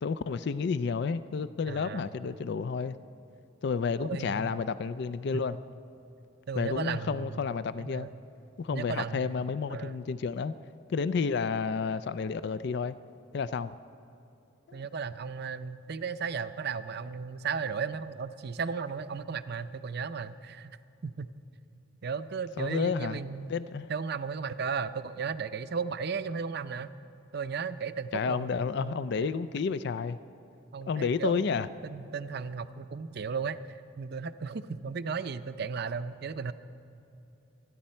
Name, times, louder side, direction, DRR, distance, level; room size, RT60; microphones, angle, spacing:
voice 1, 0.0-3.0 3.6-5.6 6.6-8.1 8.6-10.5 10.9-13.0 13.3-13.8 14.7-14.8 22.6-23.2 23.5-23.9 28.1-30.2 30.8-31.7, left 5 dB, 55° left, 14 dB, 0.4 m, -31 dB
voice 2, 1.7-2.1 4.1-4.5 6.5-7.5 7.8-8.2 8.7-9.4 9.7-10.0 14.7-20.8 21.0-21.3 22.0-23.5 23.9-26.9 27.3-29.1 30.7-36.5, right 5 dB, 55° right, 12 dB, 0.5 m, -35 dB
26.0 x 10.5 x 4.4 m, 2.8 s
head